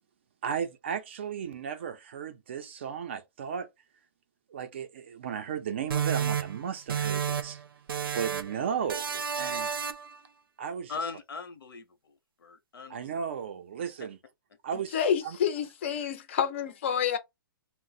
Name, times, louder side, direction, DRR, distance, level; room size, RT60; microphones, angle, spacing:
voice 1, 0.4-3.7 4.5-7.6 8.1-9.9 10.6-10.9 12.9-14.2 14.6-15.4, right 7 dB, 30° right, 0.4 m, -35 dB
sound 1, 5.9-7.6 7.9-8.6 8.9-10.2, right 7 dB, 80° right, 0.5 m, -31 dB
voice 2, 10.9-13.2, left 4 dB, 80° left, 0.8 m, -40 dB
voice 3, 14.9-17.2, left 8 dB, 35° left, 0.5 m, -28 dB
2.7 x 2.0 x 3.9 m
hypercardioid pair, 175°, 12 cm